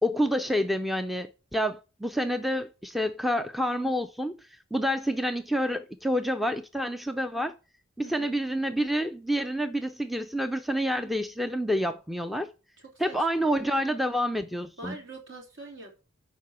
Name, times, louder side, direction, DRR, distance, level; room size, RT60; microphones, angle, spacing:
voice 1, 0.0-4.3 4.7-7.5 8.0-12.5 13.0-15.0, equal, ahead, 0.4 m, -28 dB
voice 2, 8.0-8.4 13.1-13.8 14.8-15.9, right 2 dB, 60° right, 3.6 m, -44 dB
10.5 x 4.7 x 7.5 m
head